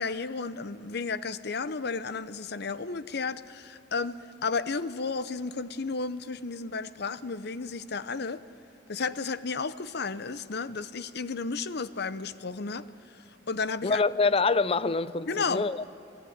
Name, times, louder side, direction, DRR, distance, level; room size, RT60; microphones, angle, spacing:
voice 1, 0.0-8.4 8.9-12.9 13.5-14.0 15.3-15.8, left 4 dB, 60° left, 0.8 m, -33 dB
voice 2, 13.8-15.8, left 4 dB, 30° left, 0.6 m, -25 dB
29.5 x 20.0 x 9.5 m
head